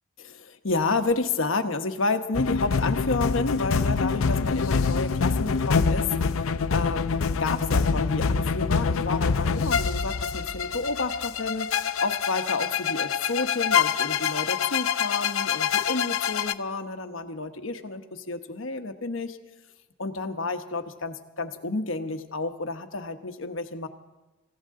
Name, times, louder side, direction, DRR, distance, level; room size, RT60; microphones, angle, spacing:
voice 1, 0.2-6.1 6.7-11.7 12.0-19.4 20.0-23.9, left 3 dB, 70° left, 7 dB, 1.1 m, -30 dB
sound 1, 2.3-16.5, left 5 dB, 85° left, 0.5 m, -25 dB
26.0 x 15.0 x 3.7 m, 1.1 s
head